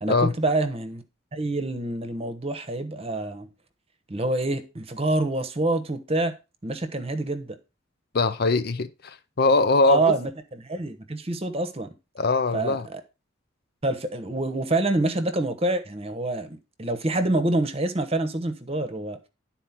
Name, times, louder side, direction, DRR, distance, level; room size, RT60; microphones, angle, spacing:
voice 1, 0.0-1.0 1.3-3.5 4.1-6.3 6.6-7.6 9.8-11.9 12.5-13.0 13.8-19.2, right 2 dB, 30° right, 1.0 m, -26 dB
voice 2, 8.1-10.1 12.2-12.9, left 3 dB, 50° left, 0.6 m, -22 dB
11.0 x 4.3 x 5.8 m
head